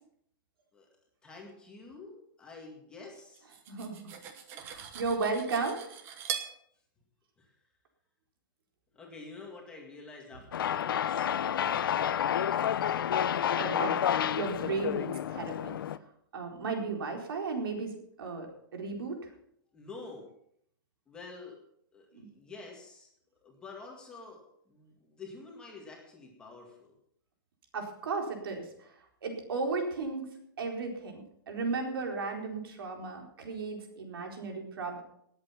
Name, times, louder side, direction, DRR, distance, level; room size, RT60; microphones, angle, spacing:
voice 1, 1.2-3.5 7.4-7.6 8.9-12.4 19.7-20.3 21.1-21.6 21.9-23.1 23.4-27.0, left 3 dB, 5° left, -1 dB, 2.0 m, -48 dB
Cutlery silverware, 3.3-6.5, right 9 dB, 20° right, 1.1 m, -41 dB
voice 2, 3.7-4.1 4.6-5.9 13.6-14.0 14.3-15.7 16.3-17.9 18.2-18.5 18.7-19.2 22.1-22.3 27.7-28.7 29.2-30.2 30.6-35.0, right 4 dB, 85° right, 2 dB, 4.2 m, -34 dB
sound 1, 10.5-16.0, left 9 dB, 75° left, 0.7 m, -29 dB
19.0 x 8.3 x 5.8 m, 0.70 s
hypercardioid pair, 180°, 12 cm